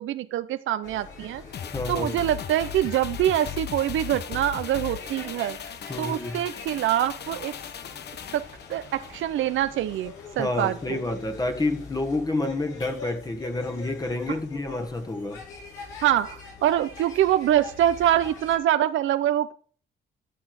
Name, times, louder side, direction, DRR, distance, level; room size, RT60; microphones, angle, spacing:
voice 1, 0.0-1.4 1.9-5.6 6.0-7.5 8.3-8.4 8.7-11.0 14.3-14.4 16.0-19.5, right 12 dB, 75° right, 0.7 m, -25 dB
sound 1, 0.8-18.6, left 3 dB, 80° left, 5.7 m, -43 dB
sound 2, 1.5-10.1 10.4-10.5, left 9 dB, 55° left, 1.0 m, -38 dB
voice 2, 1.7-2.2 5.9-6.5 10.4-15.4, left 2 dB, 20° left, 1.5 m, -29 dB
13.5 x 6.2 x 4.9 m
cardioid pair, 90°, 20 cm